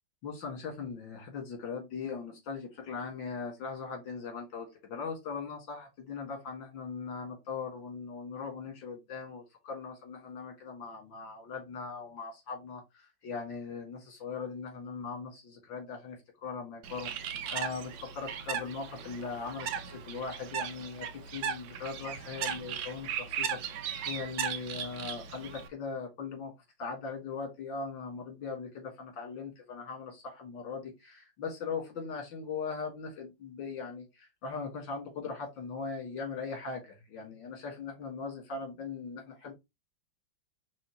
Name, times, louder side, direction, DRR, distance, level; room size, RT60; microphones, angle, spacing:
voice 1, 0.2-17.1 17.5-26.5 26.8-39.5, left 5 dB, 75° left, 2.5 m, -40 dB
Bird, 16.8-25.7, right 8 dB, 80° right, 1.4 m, -37 dB
5.6 x 3.1 x 3.0 m
omnidirectional pair, 2.1 m